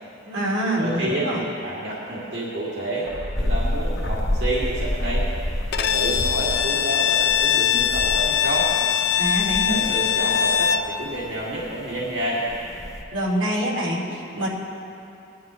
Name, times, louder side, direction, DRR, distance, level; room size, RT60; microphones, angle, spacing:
voice 1, 0.2-1.4 9.2-9.9 13.1-14.5, right 1 dB, 80° right, -5 dB, 2.6 m, -25 dB
voice 2, 0.8-1.3 1.6-5.3 5.8-8.7 9.6-12.5, right 1 dB, 60° right, -7 dB, 2.3 m, -29 dB
sound 1, 3.0-7.7 7.9-8.0, left 1 dB, 80° left, 1.0 m, -38 dB
sound 2, 3.4-13.0, left 1 dB, 15° left, 0.7 m, -30 dB
Bowed string instrument, 5.7-10.9, left 9 dB, 55° left, 0.5 m, -22 dB
20.0 x 11.5 x 3.1 m, 2.9 s
head